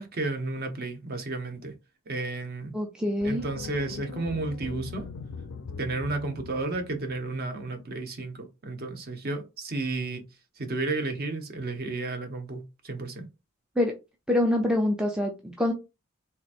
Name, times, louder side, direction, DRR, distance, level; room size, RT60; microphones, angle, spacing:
voice 1, 0.0-1.7 2.1-2.7 3.2-5.1 5.8-10.2 10.6-13.3, right 3 dB, 45° right, 0.7 m, -32 dB
voice 2, 2.7-3.4 13.8-13.9 14.3-15.7, left 1 dB, 5° right, 0.4 m, -25 dB
sound 1, 3.2-7.5, left 5 dB, 65° left, 0.4 m, -41 dB
3.3 x 2.8 x 2.4 m
head